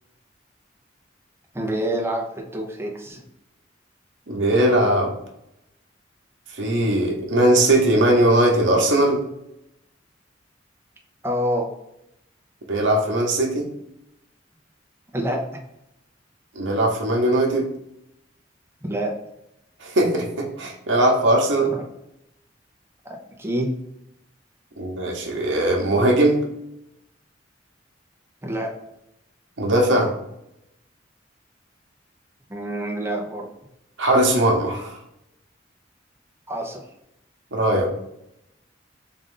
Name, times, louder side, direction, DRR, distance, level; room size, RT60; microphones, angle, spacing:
voice 1, 1.5-3.2 11.2-11.7 15.1-15.5 18.8-19.1 21.7-21.8 23.0-23.7 28.4-28.7 32.5-33.5 36.5-36.8, right 1 dB, 15° right, -1 dB, 0.7 m, -27 dB
voice 2, 4.3-5.1 6.6-9.2 12.7-13.7 16.5-17.7 19.8-21.7 24.8-26.4 29.6-30.1 34.0-35.0 37.5-37.9, right 1 dB, 80° right, 1 dB, 0.9 m, -19 dB
3.8 x 2.6 x 3.7 m, 0.83 s
head